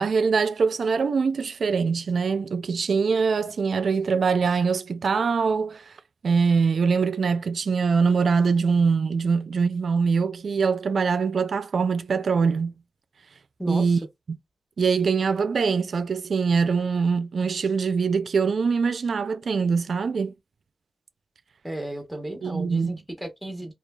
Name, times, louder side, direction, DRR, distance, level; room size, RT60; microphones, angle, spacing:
voice 1, 0.0-5.8 6.2-12.7 13.7-14.0 14.8-20.3 22.4-23.0, right 5 dB, 65° right, 0.3 m, -23 dB
voice 2, 13.6-14.0 21.6-23.7, right 1 dB, ahead, 0.9 m, -33 dB
3.1 x 2.3 x 2.2 m
wide cardioid pair, 150°, 0 cm